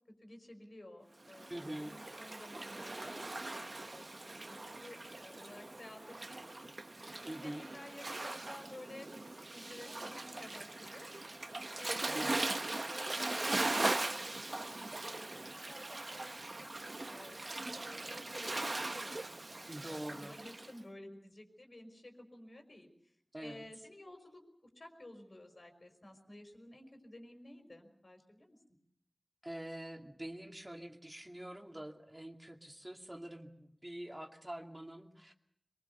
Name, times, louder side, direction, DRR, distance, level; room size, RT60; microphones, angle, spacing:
voice 1, 0.2-6.7 7.2-11.1 11.8-16.8 17.1-23.1 23.4-24.4 24.8-28.6, left 1 dB, 75° left, 4 dB, 5.3 m, -53 dB
Waves surf, 1.3-20.7, right 2 dB, 65° right, 1.0 m, -40 dB
voice 2, 1.5-1.9 7.3-7.6 12.1-12.5 19.7-20.4 23.3-23.7 29.4-35.3, right 1 dB, 25° right, 3 dB, 2.4 m, -45 dB
23.5 x 23.0 x 6.9 m, 0.68 s
wide cardioid pair, 50°, 0 cm